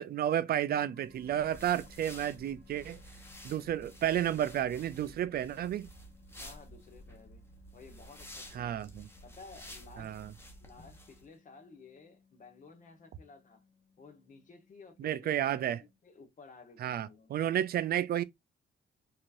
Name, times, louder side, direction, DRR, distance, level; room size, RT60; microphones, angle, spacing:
voice 1, 0.0-3.0 3.4-5.9 8.5-9.1 10.0-10.3 15.0-15.8 16.8-18.2, right 11 dB, 55° right, 0.4 m, -31 dB
sound 1, 0.6-15.9, left 4 dB, 15° right, 1.1 m, -64 dB
sound 2, 1.0-11.2, equal, 10° left, 1.3 m, -51 dB
voice 2, 6.4-8.8 9.2-10.2 10.6-13.6 14.0-15.5 15.8-17.3, left 4 dB, 45° left, 1.3 m, -55 dB
4.6 x 2.9 x 2.5 m
cardioid pair, 120°, 19 cm